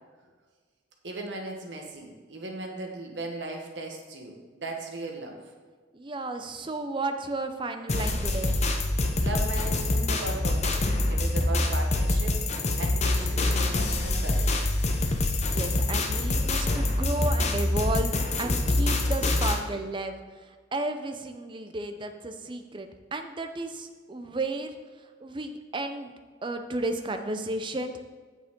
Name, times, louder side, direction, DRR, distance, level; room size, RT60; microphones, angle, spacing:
voice 1, 1.0-5.4 9.2-14.7, right 2 dB, 70° right, 2 dB, 1.4 m, -37 dB
voice 2, 5.9-8.6 11.0-11.1 15.5-20.2 20.5-24.8 25.2-26.1 26.4-28.0, right 2 dB, 25° right, 7 dB, 0.6 m, -33 dB
sound 1, 7.9-19.6, left 2 dB, 35° left, 0.7 m, -25 dB
8.4 x 6.9 x 3.8 m, 1.5 s
head